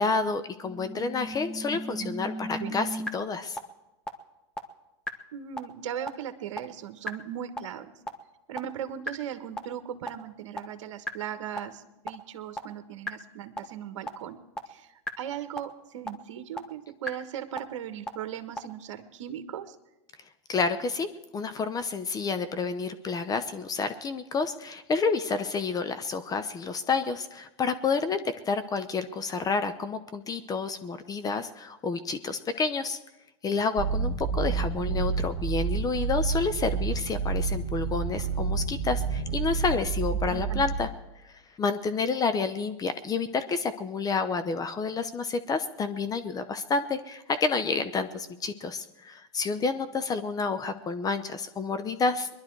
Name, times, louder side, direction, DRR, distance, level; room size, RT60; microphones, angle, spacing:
voice 1, 0.0-3.6 20.5-21.1 21.3-33.0 33.4-40.9 41.2-52.3, left 4 dB, 25° left, 11 dB, 0.8 m, -29 dB
sound 1, 0.6-3.1 3.6-3.7 4.1-4.2 4.6-4.7 5.1-5.2 5.6-5.7 6.1-6.2 6.6-6.7 7.1-7.2 7.6-7.7 8.1-8.2 8.6-8.7 9.1-9.2 9.6-9.7 10.1-10.2 10.6-10.7 11.1-11.2 11.6-11.7 12.1-12.2 12.6-12.7 13.1-13.2 13.6-13.7 14.1-14.2 14.6-14.7 15.1-15.2 15.6-15.7 16.1-16.2 16.6-16.7 17.1-17.2 17.6-17.7 18.1-18.2 18.6-18.7, left 1 dB, 5° left, 1.2 m, -34 dB
voice 2, 1.7-2.1 2.6-2.8 5.3-7.9 8.5-14.4 14.7-19.8 40.3-40.6, right 10 dB, 70° right, 10 dB, 1.2 m, -38 dB
sound 2, 33.8-40.9, right 5 dB, 45° right, 1.3 m, -29 dB
21.5 x 11.5 x 4.6 m, 0.96 s
hypercardioid pair, 110°, 16 cm